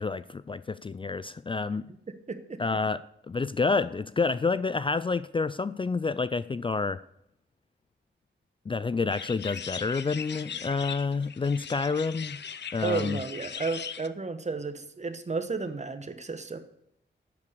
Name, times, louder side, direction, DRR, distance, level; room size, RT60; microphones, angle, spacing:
voice 1, 0.0-1.9 2.6-3.0 3.3-7.0 8.7-12.4 12.7-13.2, left 4 dB, 25° left, 0.4 m, -28 dB
voice 2, 2.3-2.6 12.8-16.6, right 4 dB, 35° right, 1.3 m, -32 dB
sound 1, 9.1-14.1, left 7 dB, 65° left, 0.7 m, -39 dB
11.5 x 8.4 x 6.9 m
wide cardioid pair, 115°, 19 cm